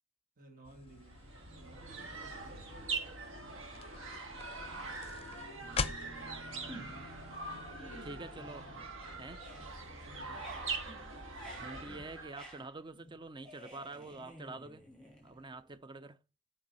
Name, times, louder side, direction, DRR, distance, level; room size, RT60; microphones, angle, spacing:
voice 1, 0.4-3.7 7.4-8.1 9.9-10.5, right 2 dB, 40° right, 2.2 m, -58 dB
sound 1, 0.6-7.7, left 4 dB, 25° left, 0.7 m, -44 dB
sound 2, 1.0-12.5, right 3 dB, 60° right, 1.9 m, -43 dB
voice 2, 5.6-7.1 8.0-8.7 9.2-9.5 11.6-14.8 15.2-16.2, right 3 dB, 20° right, 0.5 m, -47 dB
sound 3, 6.7-7.2 7.6-9.0 9.2-15.8, right 1 dB, 5° left, 4.1 m, -53 dB
7.8 x 5.5 x 6.8 m
head